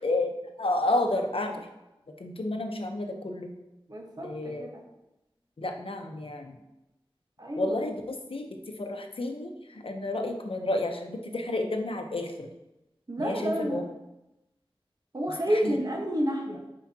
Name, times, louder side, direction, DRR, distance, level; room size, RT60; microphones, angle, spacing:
voice 1, 0.0-1.6 2.2-3.5 4.2-4.7 5.6-6.6 7.6-12.5 13.2-13.8 15.5-15.8, left 2 dB, 75° left, 3 dB, 0.9 m, -31 dB
voice 2, 3.9-4.8 7.4-7.8 13.1-13.8 15.1-16.6, equal, 45° right, 0 dB, 1.3 m, -30 dB
8.5 x 4.9 x 2.9 m, 0.92 s
wide cardioid pair, 60°, 9 cm